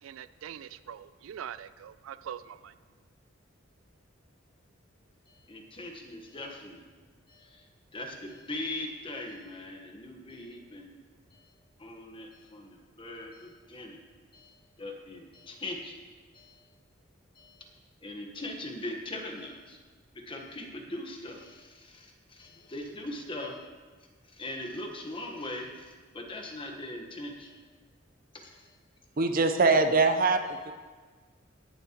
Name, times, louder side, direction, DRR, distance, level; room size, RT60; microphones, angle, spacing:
voice 1, 0.0-2.7, right 9 dB, 85° right, 14 dB, 0.3 m, -43 dB
voice 2, 5.5-6.8 7.3-7.6 7.9-10.9 11.8-14.0 14.3-15.9 16.3-16.6 17.4-17.6 18.0-19.8 20.3-23.6 24.4-27.6 28.3-28.6, left 1 dB, 25° left, 2 dB, 1.1 m, -40 dB
voice 3, 29.2-30.7, right 3 dB, 45° right, 7 dB, 0.6 m, -23 dB
18.0 x 7.4 x 2.9 m, 1.4 s
head